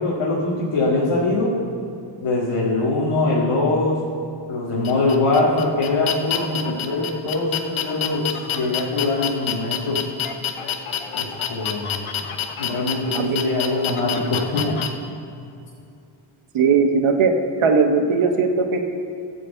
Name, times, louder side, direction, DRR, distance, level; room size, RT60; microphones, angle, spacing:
voice 1, 0.0-1.6 2.2-4.0 4.5-10.1 11.1-12.0 12.6-14.8, left 2 dB, 90° left, -5 dB, 1.9 m, -22 dB
sound 1, 4.8-14.9, left 9 dB, 75° left, 1.0 m, -28 dB
voice 2, 16.5-17.3 17.6-18.8, right 5 dB, 75° right, 5 dB, 1.2 m, -18 dB
14.0 x 5.2 x 7.9 m, 2.6 s
wide cardioid pair, 135°, 50 cm